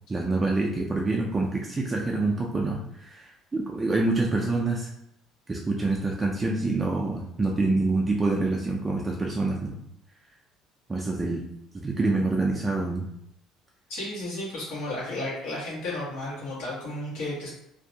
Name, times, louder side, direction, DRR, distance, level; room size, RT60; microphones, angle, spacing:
voice 1, 0.1-4.9 5.5-9.7 10.9-11.4 11.8-13.1, right 2 dB, 20° right, -1 dB, 0.3 m, -26 dB
voice 2, 13.9-17.5, left 1 dB, 90° left, -7 dB, 1.2 m, -33 dB
2.6 x 2.1 x 2.6 m, 0.78 s
cardioid pair, 110°, 0 cm